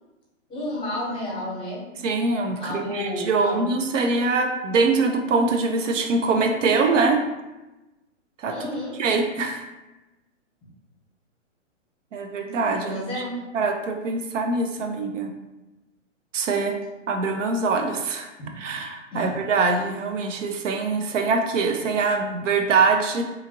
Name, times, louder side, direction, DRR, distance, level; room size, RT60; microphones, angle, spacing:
voice 1, 0.5-1.8 2.6-3.7 8.5-8.9 12.9-13.4 18.4-18.7 19.1-19.4, left 1 dB, 15° left, -6 dB, 0.9 m, -31 dB
voice 2, 2.0-7.2 8.4-8.6 9.0-9.7 12.1-13.1 13.5-15.3 16.3-16.8 17.1-23.2, right 4 dB, 75° right, 4 dB, 0.5 m, -23 dB
2.8 x 2.4 x 2.7 m, 1.0 s
hypercardioid pair, 130°, 38 cm